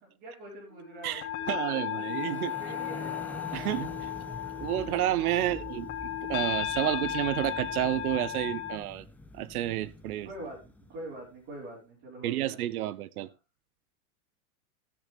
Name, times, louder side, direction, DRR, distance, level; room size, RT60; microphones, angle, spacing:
voice 1, 0.0-2.0 2.5-3.4 5.4-5.6 10.3-12.6, right 1 dB, 40° right, 5.2 m, -45 dB
sound 1, 0.9-8.8, left 10 dB, 40° left, 2.9 m, -35 dB
voice 2, 1.0-2.5 3.5-4.1 4.6-9.1 9.3-10.3 12.2-13.3, right 14 dB, 80° right, 0.8 m, -30 dB
sound 2, 1.8-11.2, left 2 dB, 5° left, 0.8 m, -45 dB
15.5 x 6.8 x 3.4 m
supercardioid pair, 140°, 43 cm